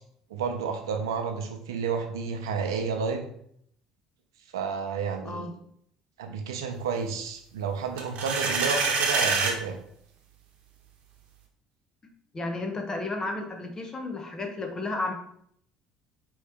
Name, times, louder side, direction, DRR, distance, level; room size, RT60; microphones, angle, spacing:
voice 1, 0.3-3.2 4.5-5.5 6.2-9.8, right 5 dB, 90° right, 5 dB, 0.6 m, -31 dB
sound 1, 8.0-9.6, right 4 dB, 60° right, 0.9 m, -25 dB
voice 2, 12.3-15.1, left 2 dB, 30° left, 3 dB, 0.9 m, -32 dB
4.6 x 3.1 x 3.4 m, 0.68 s
hypercardioid pair, 70°, 2 cm